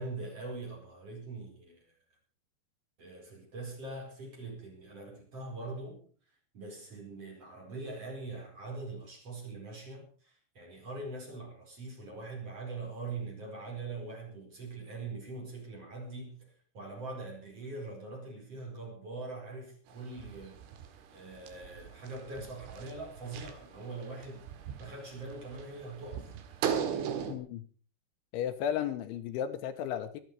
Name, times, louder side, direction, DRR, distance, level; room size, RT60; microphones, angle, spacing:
voice 1, 0.0-1.9 3.0-6.0 6.5-20.6 21.1-24.5 24.8-26.3, right 3 dB, 30° right, 5.5 m, -42 dB
sound 1, 19.9-27.3, right 8 dB, 80° right, 4.1 m, -39 dB
voice 2, 27.3-27.6 28.3-30.2, left 9 dB, 80° left, 3.3 m, -34 dB
23.5 x 9.4 x 4.7 m
omnidirectional pair, 5.6 m